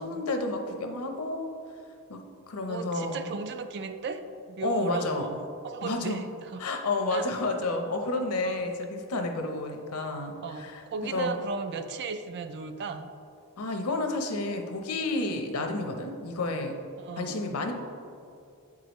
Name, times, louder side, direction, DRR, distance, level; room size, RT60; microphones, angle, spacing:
voice 1, 0.0-1.6 2.1-3.3 4.6-5.3 5.8-6.2 6.6-11.3 13.6-16.7 17.2-17.7, left 2 dB, 70° left, 5 dB, 0.7 m, -31 dB
voice 2, 2.7-4.2 4.5-6.6 7.1-7.3 8.4-8.7 10.4-13.1 17.0-17.5, right 4 dB, 50° right, 9 dB, 0.4 m, -36 dB
8.5 x 4.8 x 3.0 m, 2.5 s
head